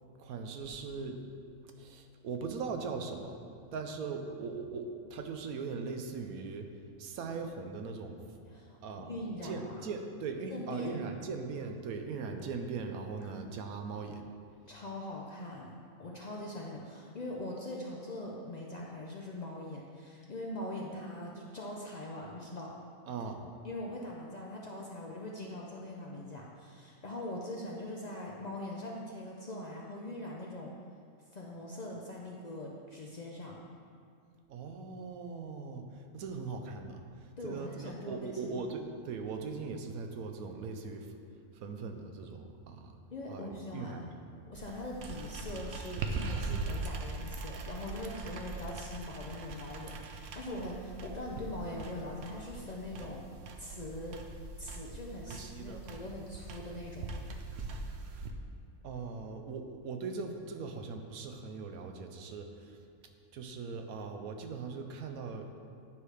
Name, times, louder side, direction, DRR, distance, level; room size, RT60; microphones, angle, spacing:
voice 1, 0.2-1.2 1.6-3.4 3.7-8.4 8.8-14.2 23.1-23.4 34.5-41.1 41.5-43.0 43.3-44.1 55.3-55.8 58.8-62.8 63.3-65.6, right 4 dB, 85° right, 5 dB, 1.1 m, -40 dB
voice 2, 8.5-8.8 9.1-9.8 10.5-11.0 14.7-15.7 16.0-22.8 23.6-30.7 31.3-33.6 37.4-38.5 43.1-44.1 44.5-53.2 53.6-54.2 54.6-57.1, left 1 dB, 65° left, -2 dB, 0.4 m, -42 dB
sound 1, 44.5-58.3, right 3 dB, 65° right, 0.7 m, -41 dB
9.9 x 4.8 x 3.3 m, 2.4 s
omnidirectional pair, 1.5 m